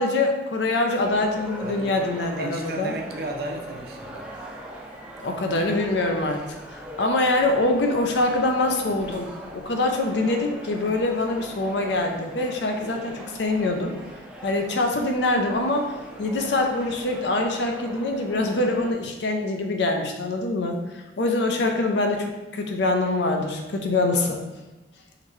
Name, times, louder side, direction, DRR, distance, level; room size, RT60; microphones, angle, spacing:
voice 1, 0.0-3.0 5.2-14.0 14.4-24.4, left 2 dB, 75° left, 3 dB, 0.5 m, -24 dB
sound 1, 1.0-18.9, right 1 dB, 5° right, 0.4 m, -41 dB
voice 2, 1.6-1.9 2.4-4.3, right 1 dB, 55° right, 1 dB, 0.6 m, -34 dB
3.9 x 3.1 x 3.1 m, 1.1 s
head